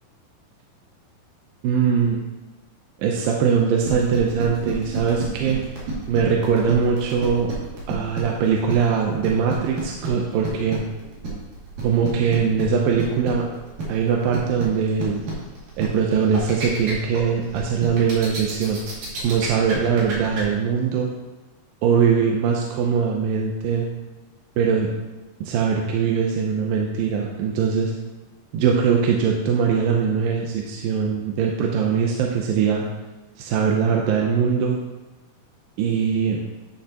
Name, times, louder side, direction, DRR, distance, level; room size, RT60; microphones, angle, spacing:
voice 1, 1.6-2.2 3.0-5.6 6.1-7.5 7.9-10.8 11.8-13.4 13.9-15.2 15.8-18.8 19.2-21.1 21.8-23.9 24.6-24.9 25.4-27.9 28.5-32.9 33.4-34.8 35.8-36.4, right 6 dB, 75° right, 0 dB, 2.3 m, -21 dB
sound 1, 3.8-20.4, right 3 dB, 60° right, 3.8 m, -31 dB
12.0 x 6.4 x 2.9 m, 1.2 s
omnidirectional pair, 4.5 m